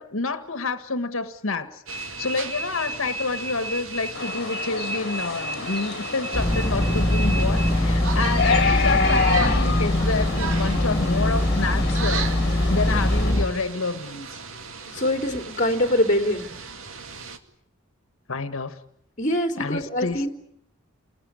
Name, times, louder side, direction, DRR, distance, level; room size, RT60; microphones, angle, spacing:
voice 1, 0.0-14.3 18.3-18.8 19.6-20.3, left 3 dB, 85° left, 10 dB, 1.6 m, -29 dB
sound 1, 1.9-17.4, right 4 dB, 90° right, 2.4 m, -35 dB
sound 2, 4.1-13.3, left 4 dB, 55° left, 2.3 m, -29 dB
sound 3, 6.3-13.5, left 1 dB, 15° left, 2.7 m, -22 dB
voice 2, 14.9-16.5 19.2-20.3, left 1 dB, 40° left, 6 dB, 3.1 m, -23 dB
29.0 x 21.0 x 9.8 m, 0.72 s
head